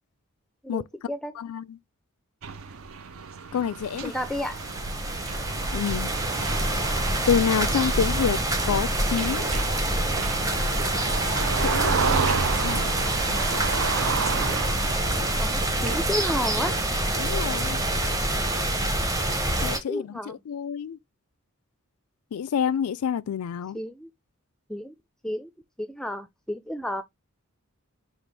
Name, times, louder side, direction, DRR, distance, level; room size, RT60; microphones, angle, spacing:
voice 1, 0.6-1.3 4.0-4.6 15.4-16.8 19.6-20.4 23.7-24.1 24.7-24.9 25.2-25.5 25.8-27.0, left 1 dB, 5° left, 0.4 m, -32 dB
voice 2, 1.4-1.8 3.5-4.1 5.7-6.1 7.3-8.4 8.6-9.5 11.6-11.9 12.6-12.9 13.2-13.4 17.2-17.8 19.6-21.0 22.3-23.8, left 8 dB, 80° left, 0.4 m, -27 dB
sound 1, 2.4-16.8, right 5 dB, 65° right, 0.6 m, -32 dB
sound 2, 3.8-19.8, right 1 dB, 15° right, 0.8 m, -26 dB
5.9 x 2.4 x 3.3 m
head